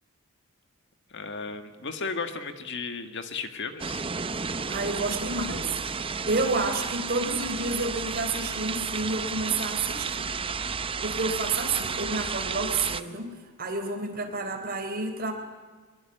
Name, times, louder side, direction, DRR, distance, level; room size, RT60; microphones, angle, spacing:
voice 1, 1.1-4.1, left 4 dB, 55° left, 8 dB, 1.9 m, -35 dB
sound 1, 3.8-13.0, right 5 dB, 25° right, 0.7 m, -32 dB
voice 2, 4.7-5.7 6.3-10.4 11.0-13.3 13.6-15.3, right 3 dB, 40° right, 5 dB, 3.9 m, -29 dB
22.5 x 22.5 x 9.1 m, 1.4 s
head